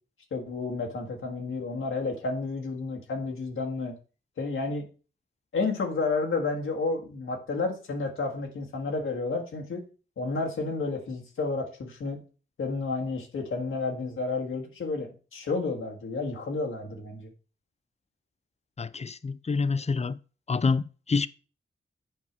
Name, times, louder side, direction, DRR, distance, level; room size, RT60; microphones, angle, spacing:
voice 1, 0.3-3.9 4.4-4.9 5.5-9.8 10.2-12.2 12.6-17.3, left 3 dB, 90° left, 1.6 m, -31 dB
voice 2, 18.8-20.2 20.5-21.3, left 4 dB, 30° left, 0.5 m, -27 dB
7.4 x 4.8 x 5.9 m
cardioid pair, 40°, 20 cm